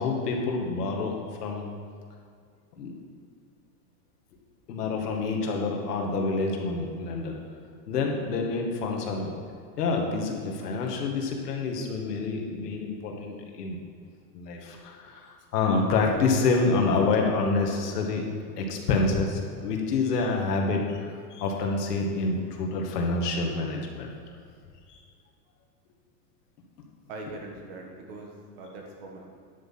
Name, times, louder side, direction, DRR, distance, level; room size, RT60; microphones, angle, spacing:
voice 1, 0.0-1.7 2.8-2.9 4.7-7.4 7.9-9.4 9.8-13.8 14.3-18.3 18.6-24.1 24.9-25.0, left 3 dB, 75° left, 1 dB, 2.2 m, -27 dB
voice 2, 27.1-29.3, right 2 dB, 40° right, 0 dB, 1.6 m, -42 dB
10.5 x 8.1 x 5.9 m, 2.2 s
supercardioid pair, 180°, 48 cm